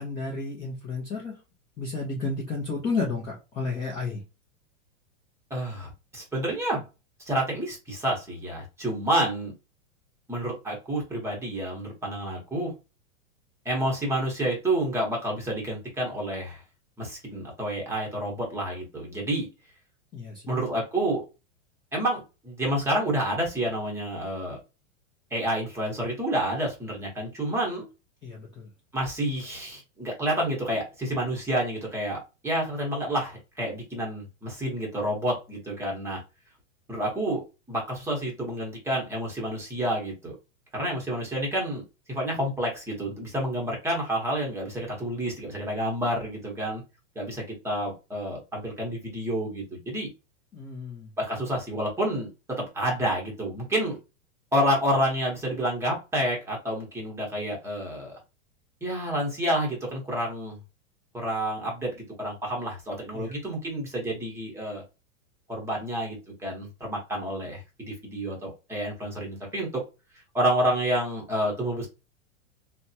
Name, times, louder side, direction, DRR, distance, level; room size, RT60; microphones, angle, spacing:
voice 1, 0.0-1.4 1.8-4.2 20.1-20.4 28.2-28.7 50.5-51.1 63.1-63.3, left 3 dB, 15° left, -3 dB, 0.4 m, -32 dB
voice 2, 5.5-6.8 7.2-9.5 10.3-12.7 13.6-16.6 17.0-19.5 20.5-21.2 21.9-24.6 25.3-27.8 28.9-36.2 36.9-37.4 37.7-40.3 40.7-41.8 42.1-46.8 47.2-50.1 51.2-54.0 54.5-58.1 58.8-60.6 61.1-64.8 65.5-69.8 70.3-71.9, right 1 dB, 5° right, -2 dB, 0.8 m, -29 dB
3.2 x 2.1 x 2.6 m, 0.28 s
supercardioid pair, 145°, 39 cm